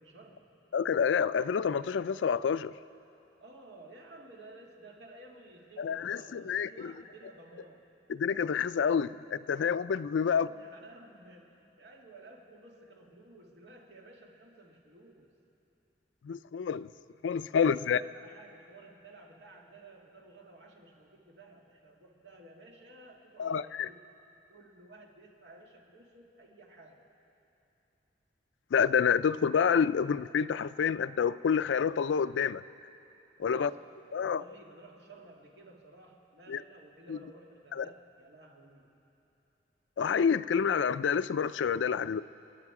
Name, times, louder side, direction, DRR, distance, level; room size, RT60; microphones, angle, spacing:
voice 1, 0.0-0.5 3.4-7.9 10.2-15.3 17.7-24.0 24.5-27.0 33.5-38.9, right 2 dB, 70° right, 0 dB, 2.0 m, -54 dB
voice 2, 0.7-2.8 5.8-6.9 8.1-10.5 16.2-16.9 17.2-18.0 23.4-23.9 28.7-32.6 33.4-33.7 34.1-34.4 36.5-36.6 37.1-37.2 37.8-37.9 40.0-42.2, left 6 dB, 85° left, 16 dB, 0.4 m, -28 dB
28.5 x 10.0 x 4.8 m, 2.9 s
head